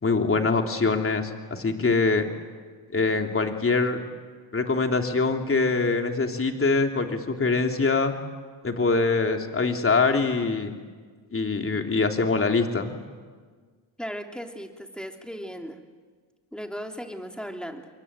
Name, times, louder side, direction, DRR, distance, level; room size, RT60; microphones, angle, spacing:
voice 1, 0.0-2.3 2.9-4.0 4.5-8.2 8.6-10.7 11.3-13.0, left 3 dB, 30° left, 4 dB, 3.3 m, -24 dB
voice 2, 14.0-15.8 16.5-17.9, equal, ahead, 3 dB, 3.0 m, -36 dB
26.5 x 23.0 x 8.9 m, 1.6 s
cardioid pair, 85°, 45 cm